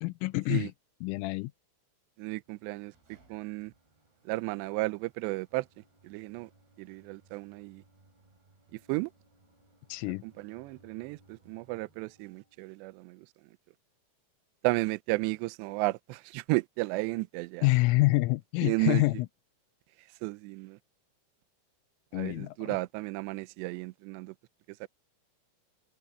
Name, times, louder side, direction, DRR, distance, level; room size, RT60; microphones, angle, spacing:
voice 1, 0.0-0.7 1.0-1.5 9.9-10.2 17.6-19.2 22.1-22.8, left 21 dB, 85° left, 3.1 m, -27 dB
voice 2, 2.2-2.9 3.3-3.7 4.3-5.7 6.0-6.5 6.8-7.8 8.9-9.1 10.0-13.3 14.6-17.7 18.6-19.0 20.2-20.8 22.1-24.3 24.8-24.9, right 22 dB, 90° right, 2.4 m, -33 dB
sound 1, 2.4-12.7, right 2 dB, 50° right, 10.0 m, -64 dB
open air
omnidirectional pair, 5.8 m